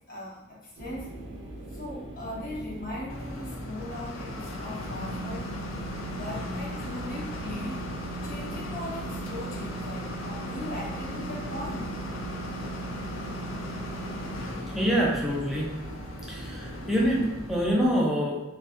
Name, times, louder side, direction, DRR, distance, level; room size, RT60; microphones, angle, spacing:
voice 1, 0.1-1.1 1.7-5.5 6.1-7.8 8.2-11.9, left 1 dB, 45° left, -5 dB, 0.7 m, -39 dB
sound 1, 0.8-17.9, right 1 dB, 60° right, 0.5 m, -41 dB
sound 2, 3.1-17.8, equal, 75° left, 0.4 m, -37 dB
voice 2, 14.7-15.7 16.2-18.4, equal, ahead, -5 dB, 0.5 m, -26 dB
2.6 x 2.4 x 2.4 m, 0.99 s
head